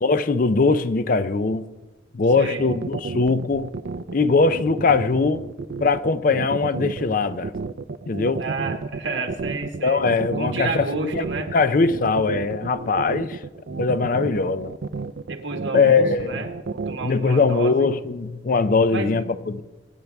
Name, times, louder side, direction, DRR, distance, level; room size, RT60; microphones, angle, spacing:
voice 1, 0.0-1.7 2.1-3.7 4.1-5.4 5.8-7.5 8.1-8.4 9.8-11.3 11.5-13.4 13.8-14.7 15.7-16.5 17.0-19.6, left 4 dB, 45° left, 0.5 m, -21 dB
sound 1, 2.4-17.1, right 4 dB, 55° right, 0.4 m, -31 dB
voice 2, 2.4-2.7 8.4-10.0 10.4-11.5 15.3-17.9 18.9-19.3, right 3 dB, 75° right, 1.8 m, -31 dB
24.0 x 10.0 x 3.5 m
head